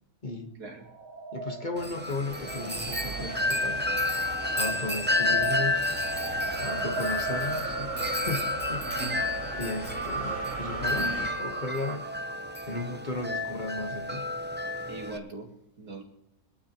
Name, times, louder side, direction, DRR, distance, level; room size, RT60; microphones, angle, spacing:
voice 1, 0.2-0.6 1.3-3.8 4.5-5.9 6.6-9.2 9.5-12.1 12.7-14.3, left 2 dB, 30° left, 4 dB, 1.3 m, -35 dB
sound 1, 0.8-13.2, right 3 dB, 70° right, 4.9 m, -39 dB
Wind chime, 1.8-15.2, left 2 dB, 15° right, 0.4 m, -31 dB
sound 2, 2.3-11.3, right 2 dB, 5° left, 4.5 m, -41 dB
voice 2, 8.8-9.2 14.9-16.0, right 2 dB, 90° right, 1 dB, 3.0 m, -40 dB
25.0 x 9.7 x 3.0 m, 0.87 s
omnidirectional pair, 1.6 m